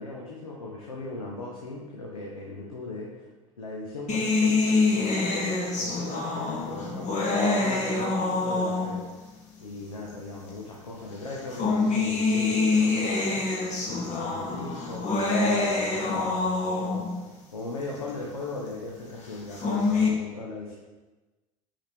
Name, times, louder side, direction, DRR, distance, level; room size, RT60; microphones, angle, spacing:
voice 1, 0.0-3.1 3.6-9.3 9.6-13.4 13.8-17.1 17.5-20.7, left 2 dB, 85° left, -3 dB, 0.8 m, -38 dB
sound 1, 4.1-9.2 10.1-10.2 11.3-17.2 19.3-20.1, left 3 dB, 40° left, 1.3 m, -26 dB
5.6 x 5.0 x 3.4 m, 1.2 s
figure-of-eight pair, 65°, 18 cm